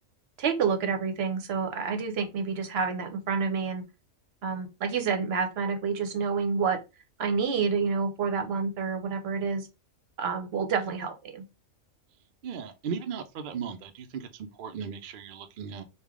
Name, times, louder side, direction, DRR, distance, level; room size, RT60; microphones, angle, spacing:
voice 1, 0.4-3.8 4.4-6.8 7.2-9.7 10.2-11.4, right 5 dB, 60° right, 0.8 m, -28 dB
voice 2, 12.4-15.8, right 6 dB, 80° right, 0.4 m, -37 dB
3.2 x 2.3 x 3.5 m
omnidirectional pair, 1.4 m